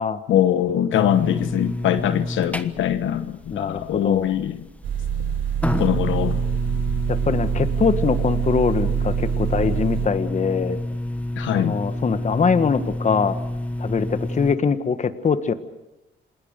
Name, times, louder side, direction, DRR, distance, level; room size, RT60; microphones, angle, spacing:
voice 1, 0.3-4.6 5.8-6.4 11.4-11.8, left 11 dB, 75° left, 10 dB, 1.1 m, -22 dB
sound 1, 0.9-14.6, left 1 dB, 5° left, 1.3 m, -29 dB
voice 2, 3.5-4.3 7.1-10.8 11.5-13.4 13.8-15.5, left 5 dB, 35° left, 10 dB, 1.6 m, -23 dB
sound 2, 4.8-10.1, right 9 dB, 80° right, 5.0 m, -25 dB
28.0 x 19.5 x 6.7 m, 0.96 s
cardioid pair, 90°, 20 cm